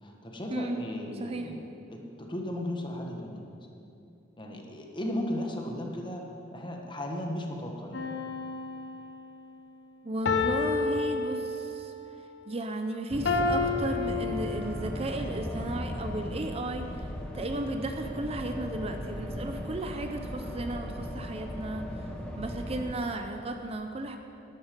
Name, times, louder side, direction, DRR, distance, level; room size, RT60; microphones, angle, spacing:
voice 1, 0.0-3.6 4.4-6.2 6.5-8.1, left 1 dB, 25° left, 1 dB, 1.3 m, -36 dB
voice 2, 1.2-1.5 10.0-11.9 12.5-17.1 17.3-22.1 22.4-24.2, right 1 dB, 35° right, 6 dB, 0.6 m, -34 dB
sound 1, 7.9-9.3 10.3-11.9 13.3-15.0 15.6-15.7, left 4 dB, 70° left, 1.0 m, -30 dB
sound 2, 13.1-22.9, equal, 5° left, 1.1 m, -37 dB
11.5 x 11.5 x 5.2 m, 2.7 s
head